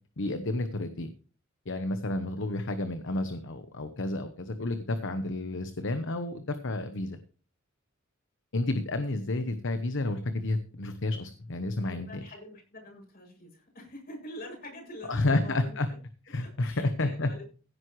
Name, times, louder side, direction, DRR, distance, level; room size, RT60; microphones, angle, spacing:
voice 1, 0.2-1.1 1.7-7.2 8.5-12.2 15.1-15.9 16.3-17.3, left 2 dB, 60° left, 10 dB, 1.0 m, -30 dB
voice 2, 11.8-16.0 16.4-17.4, left 1 dB, 45° left, 1 dB, 7.3 m, -45 dB
16.0 x 9.4 x 3.2 m, 0.38 s
head